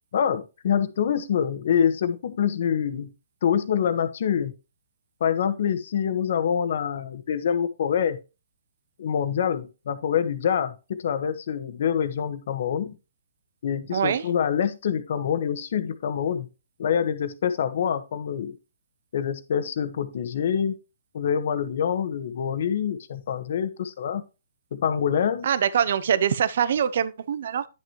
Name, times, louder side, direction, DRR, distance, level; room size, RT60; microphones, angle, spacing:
voice 1, 0.1-3.1 3.4-4.5 5.2-8.2 9.0-13.0 13.6-16.5 16.8-18.6 19.1-20.7 21.1-24.2 24.7-25.5, left 8 dB, 60° left, 1.2 m, -25 dB
voice 2, 13.9-14.2 25.4-27.7, right 8 dB, 60° right, 0.7 m, -23 dB
10.0 x 6.5 x 3.0 m
hypercardioid pair, 140°, 0 cm